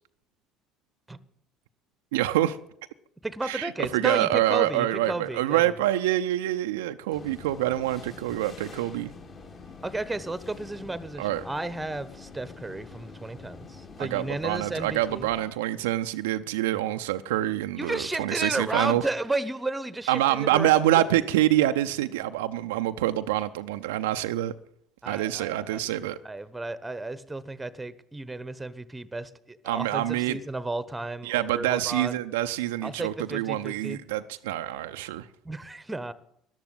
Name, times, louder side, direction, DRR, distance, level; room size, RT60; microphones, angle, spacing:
voice 1, 2.1-2.6 3.4-9.1 11.2-11.4 14.0-19.0 20.1-24.5 25.1-26.2 29.6-30.4 31.2-35.3, right 14 dB, 70° right, 0.6 m, -26 dB
voice 2, 3.2-5.7 9.8-15.3 17.8-20.7 25.0-32.1 32.8-34.0 35.4-36.1, right 2 dB, 10° right, 1.1 m, -33 dB
sound 1, 7.1-15.4, left 4 dB, 40° left, 3.5 m, -46 dB
13.5 x 11.5 x 9.1 m
figure-of-eight pair, 60°, 0 cm